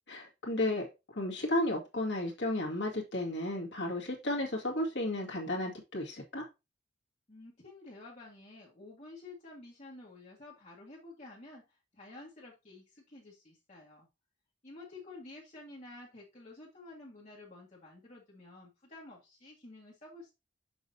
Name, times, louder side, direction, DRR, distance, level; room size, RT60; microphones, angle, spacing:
voice 1, 0.1-6.5, left 1 dB, 60° left, 2.0 m, -33 dB
voice 2, 7.3-14.1 14.6-20.3, left 2 dB, 35° left, 1.6 m, -51 dB
7.0 x 6.2 x 2.7 m
head